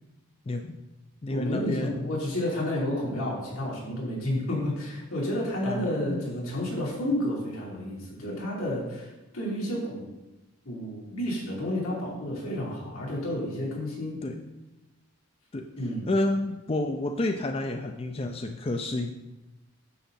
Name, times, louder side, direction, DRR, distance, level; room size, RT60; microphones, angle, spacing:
voice 1, 0.5-0.8 1.2-2.1 5.6-6.2 14.2-14.5 15.5-15.7 16.0-19.1, left 2 dB, 25° left, 5 dB, 0.4 m, -30 dB
voice 2, 1.3-10.0 10.7-14.2 15.8-16.1, left 1 dB, 80° left, -5 dB, 3.5 m, -31 dB
9.6 x 7.0 x 4.2 m, 1.0 s
head